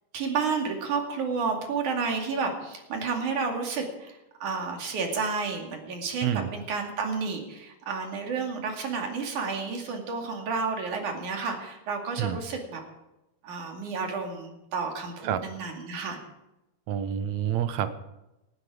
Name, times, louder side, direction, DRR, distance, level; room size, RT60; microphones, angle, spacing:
voice 1, 0.1-12.8 13.4-16.2, right 5 dB, 55° right, 2 dB, 3.6 m, -31 dB
voice 2, 16.9-18.0, right 10 dB, 80° right, 11 dB, 1.6 m, -28 dB
18.5 x 13.0 x 5.0 m, 0.94 s
omnidirectional pair, 4.4 m